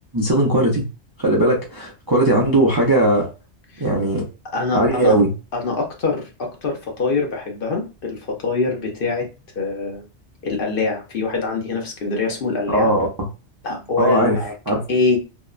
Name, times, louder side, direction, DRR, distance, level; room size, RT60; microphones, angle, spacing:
voice 1, 0.1-0.8 1.2-3.3 3.8-4.2 4.7-5.3 12.7-13.1 14.0-14.4 14.7-14.8, right 1 dB, 30° right, -3 dB, 0.4 m, -18 dB
voice 2, 4.5-5.2 5.5-9.3 9.6-10.0 10.4-12.9 13.6-14.5 14.9-15.2, left 3 dB, 55° left, 2 dB, 0.8 m, -24 dB
2.8 x 2.1 x 2.3 m, 0.30 s
omnidirectional pair, 1.2 m